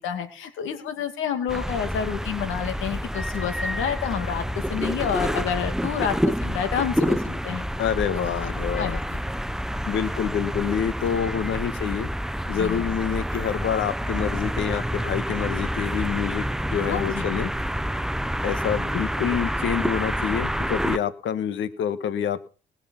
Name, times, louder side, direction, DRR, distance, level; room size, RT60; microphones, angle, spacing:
voice 1, 0.0-4.4 4.7-6.1 6.4-7.7 8.8-9.0 12.5-12.9 16.9-17.3, left 8 dB, 85° left, 8 dB, 2.4 m, -29 dB
sound 1, 1.5-21.0, equal, ahead, 0.6 m, -28 dB
voice 2, 7.8-9.0 9.9-12.1 12.5-16.4 16.7-17.5 18.4-22.4, left 8 dB, 70° left, 13 dB, 1.4 m, -27 dB
19.5 x 6.7 x 5.7 m, 0.36 s
cardioid pair, 90°, 20 cm